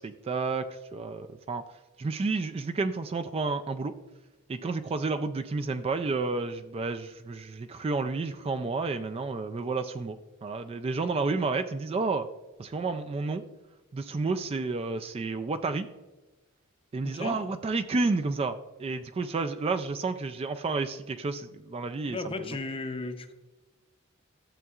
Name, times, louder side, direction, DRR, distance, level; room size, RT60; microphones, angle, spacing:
voice 1, 0.0-1.6 2.0-3.9 4.5-12.3 12.6-13.4 13.9-15.9 16.9-22.6, right 3 dB, 30° right, 8 dB, 0.3 m, -31 dB
voice 2, 17.0-17.4 22.1-23.3, left 3 dB, 25° left, 8 dB, 0.6 m, -35 dB
12.0 x 7.1 x 2.4 m, 1.2 s
head